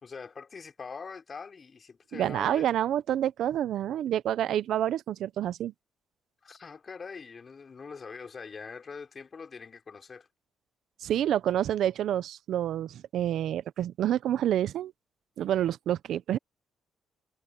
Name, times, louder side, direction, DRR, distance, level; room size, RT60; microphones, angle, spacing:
voice 1, 0.0-2.7 6.4-10.3, left 5 dB, 40° left, 3.6 m, -43 dB
voice 2, 2.1-5.7 11.0-14.9 15.4-16.4, right 11 dB, 75° right, 0.7 m, -28 dB
cardioid pair, 90°, 0 cm